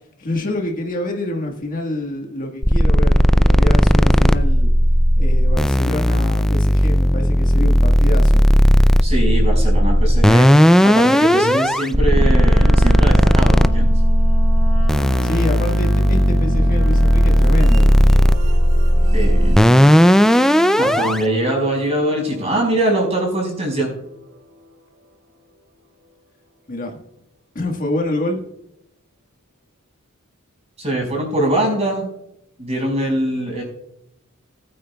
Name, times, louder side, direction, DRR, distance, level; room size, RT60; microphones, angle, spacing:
voice 1, 0.2-4.7 5.2-8.4 15.2-17.9 26.7-27.0 27.5-28.4, left 1 dB, 40° left, 1 dB, 1.5 m, -27 dB
sound 1, 2.6-21.2, equal, ahead, 0.3 m, -14 dB
voice 2, 9.0-13.9 19.1-19.6 20.8-23.9 30.8-32.1 32.6-33.6, right 1 dB, 30° right, 1 dB, 4.9 m, -22 dB
Wind instrument woodwind instrument, 12.1-18.2, right 4 dB, 75° right, 1.3 m, -32 dB
sound 2, 17.4-24.8, right 1 dB, 55° right, 2.2 m, -35 dB
20.0 x 8.8 x 2.3 m, 0.82 s
head